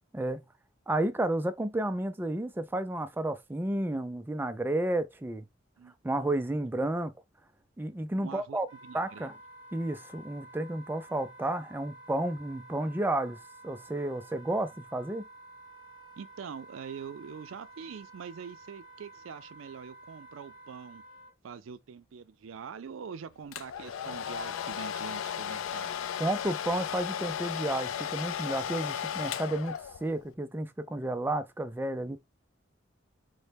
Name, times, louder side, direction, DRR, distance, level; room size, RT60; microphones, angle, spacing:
voice 1, 0.9-5.5 6.0-7.1 7.8-8.7 8.9-9.3 9.7-13.4 13.6-15.3 26.2-32.2, right 1 dB, 10° right, 0.3 m, -31 dB
voice 2, 5.8-6.3 8.2-9.3 16.2-21.0 21.4-26.0, right 6 dB, 80° right, 0.4 m, -44 dB
Wind instrument woodwind instrument, 8.7-21.3, right 2 dB, 25° left, 0.9 m, -51 dB
Domestic sounds home sounds, 23.5-30.2, left 9 dB, 85° left, 0.3 m, -35 dB
4.0 x 2.1 x 3.3 m
head